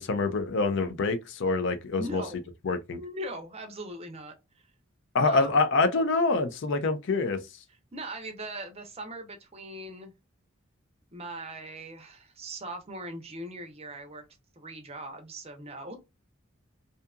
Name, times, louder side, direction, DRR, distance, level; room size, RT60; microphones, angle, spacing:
voice 1, 0.0-2.2 2.6-3.0 5.1-7.4, left 3 dB, 55° left, 0.4 m, -26 dB
voice 2, 1.9-2.4 2.9-4.7 5.2-5.6 7.9-10.1 11.1-14.2 14.6-16.0, right 1 dB, 30° right, 0.6 m, -40 dB
2.7 x 2.4 x 2.2 m
head